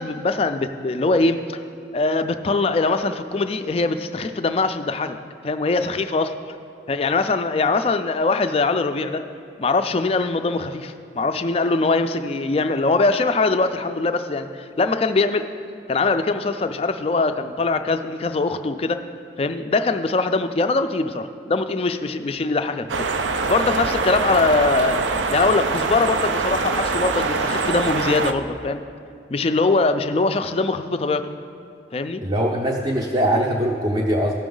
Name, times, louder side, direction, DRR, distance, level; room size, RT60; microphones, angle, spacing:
voice 1, 0.0-1.6 1.9-5.2 5.4-6.3 6.9-9.2 9.6-14.5 14.8-15.5 15.9-19.0 19.4-23.1 23.5-25.1 25.3-28.8 29.3-31.3 31.9-32.2, left 3 dB, 30° left, 9 dB, 0.3 m, -22 dB
sound 1, 22.9-28.3, right 4 dB, 85° right, 0.5 m, -24 dB
voice 2, 32.2-34.3, equal, 25° right, -2 dB, 0.5 m, -21 dB
15.5 x 6.1 x 3.8 m, 2.4 s
head